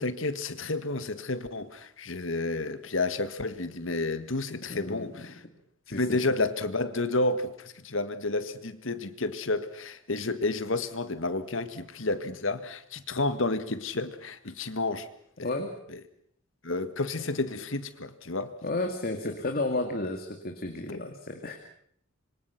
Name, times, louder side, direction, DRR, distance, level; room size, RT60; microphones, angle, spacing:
voice 1, 0.0-5.4 5.9-15.1 15.4-15.5 15.9-16.0 16.6-18.6 19.3-19.4 20.9-21.2, left 2 dB, 70° left, 11 dB, 1.7 m, -31 dB
voice 2, 4.7-5.3 5.9-6.0 15.4-15.7 18.6-21.6, left 2 dB, 45° left, 4 dB, 2.3 m, -32 dB
26.0 x 24.5 x 5.9 m, 0.67 s
head